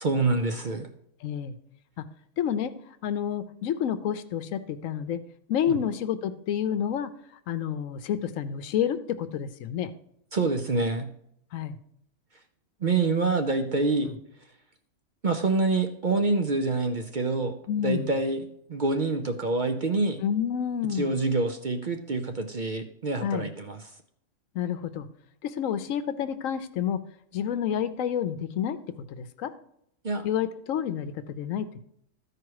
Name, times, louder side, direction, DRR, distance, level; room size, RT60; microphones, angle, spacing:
voice 1, 0.0-0.9 5.7-5.8 10.3-11.1 12.8-14.1 15.2-17.6 17.8-18.4 18.7-20.2 20.9-23.8 30.0-30.3, right 3 dB, 50° right, 6 dB, 0.6 m, -26 dB
voice 2, 1.2-1.6 2.0-2.1 2.4-5.2 5.5-7.1 7.5-9.9 11.5-11.8 14.1-14.2 17.7-18.1 20.2-21.2 23.2-23.5 24.5-25.1 25.4-27.0 27.3-28.8 29.1-29.5 30.2-31.8, left 9 dB, 75° left, 12 dB, 1.0 m, -29 dB
13.5 x 4.8 x 4.7 m, 0.72 s
omnidirectional pair, 1.4 m